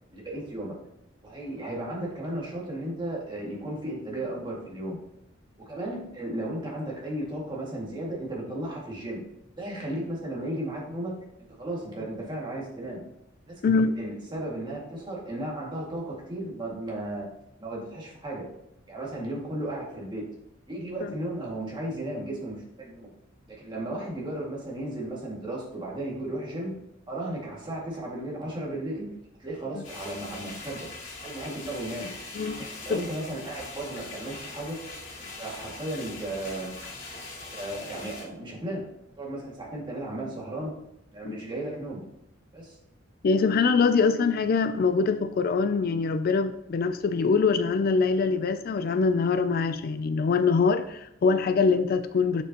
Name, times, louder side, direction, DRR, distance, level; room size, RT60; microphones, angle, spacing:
voice 1, 0.1-0.7 1.2-5.0 5.6-9.2 9.6-11.2 11.6-13.0 13.5-17.3 17.6-18.5 18.9-20.3 20.7-23.1 23.5-26.7 27.1-29.1 29.4-30.9 31.2-32.1 32.6-34.8 35.2-36.7 37.5-38.9 39.2-40.8 41.1-42.0 42.5-42.8, right 1 dB, 25° right, -4 dB, 2.1 m, -35 dB
sound 1, 29.8-38.2, left 3 dB, 80° left, 2.6 m, -41 dB
voice 2, 32.4-33.0 41.2-41.4 43.2-52.4, left 4 dB, 50° left, 11 dB, 0.3 m, -24 dB
7.1 x 7.0 x 2.9 m, 0.80 s
head